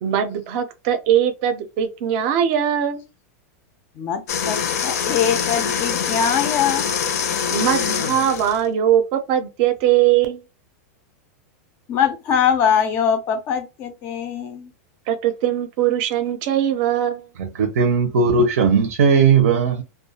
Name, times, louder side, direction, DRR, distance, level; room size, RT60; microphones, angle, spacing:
voice 1, 0.0-3.0 7.5-10.4 15.1-17.3, right 10 dB, 35° right, 0.5 m, -20 dB
voice 2, 4.0-6.9 11.9-14.7, left 8 dB, 25° left, 0.3 m, -22 dB
sound 1, 4.3-8.6, left 7 dB, 80° left, 0.5 m, -24 dB
voice 3, 17.4-19.8, right 5 dB, 85° right, 0.6 m, -17 dB
2.3 x 2.2 x 2.7 m
supercardioid pair, 170°, 8 cm